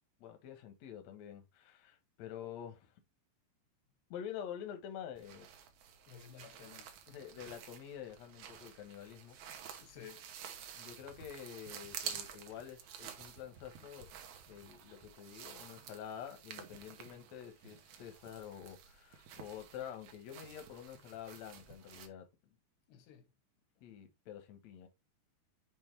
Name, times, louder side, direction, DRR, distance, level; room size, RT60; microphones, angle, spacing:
voice 1, 0.2-2.9 4.1-5.5 7.1-9.8 10.7-14.1 14.5-22.3 23.8-24.9, left 9 dB, 65° left, 1.8 m, -48 dB
sound 1, 5.1-22.1, right 8 dB, 80° right, 1.6 m, -50 dB
voice 2, 6.1-7.1 9.8-10.3 17.2-17.3 22.9-23.3 23.8-23.9, left 9 dB, 85° left, 3.0 m, -55 dB
7.3 x 3.1 x 4.5 m
omnidirectional pair, 4.7 m